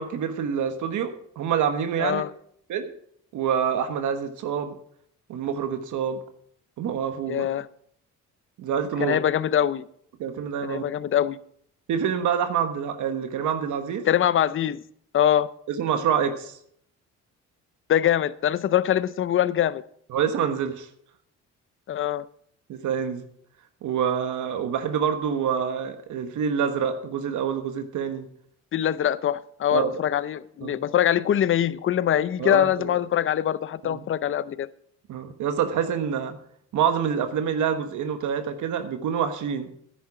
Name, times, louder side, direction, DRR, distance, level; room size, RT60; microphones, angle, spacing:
voice 1, 0.0-2.2 2.7-2.9 3.3-4.7 5.3-6.2 6.8-7.5 8.6-9.2 10.2-10.8 11.9-14.1 15.7-16.6 20.1-20.9 22.7-23.3 23.8-28.3 29.7-29.9 30.6-30.8 32.4-32.9 33.8-34.0 35.1-36.4 36.7-39.7, right 7 dB, 75° right, 1.3 m, -26 dB
voice 2, 7.3-7.7 9.0-9.8 10.6-11.4 14.1-14.8 15.1-15.5 17.9-19.8 21.9-22.3 28.7-34.7, left 10 dB, 45° left, 0.6 m, -23 dB
10.5 x 9.2 x 5.0 m
cardioid pair, 90°, 30 cm